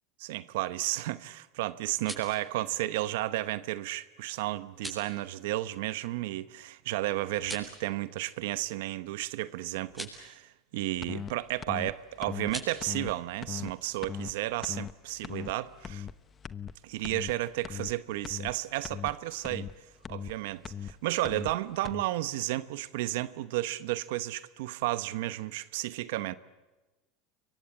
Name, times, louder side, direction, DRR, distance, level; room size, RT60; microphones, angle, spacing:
voice 1, 0.2-16.1 16.8-19.7 20.1-26.3, right 16 dB, 80° right, 0.9 m, -33 dB
sound 1, 1.8-2.4 4.7-5.1 7.3-7.8 9.8-10.2 12.4-12.7, equal, ahead, 7.8 m, -41 dB
sound 2, 11.0-11.3 11.6-11.9 12.2-12.5 12.8-13.1 13.4-13.7 14.0-14.3 14.6-14.9 15.2-15.5 15.8-16.1 16.4-16.7 17.0-17.3 17.6-17.9 18.2-18.5 18.8-19.1 19.4-19.7 20.0-20.3 20.6-20.9 21.2-21.5 21.8-22.0, left 7 dB, 30° left, 1.0 m, -38 dB
29.0 x 23.5 x 8.5 m
supercardioid pair, 115°, 0 cm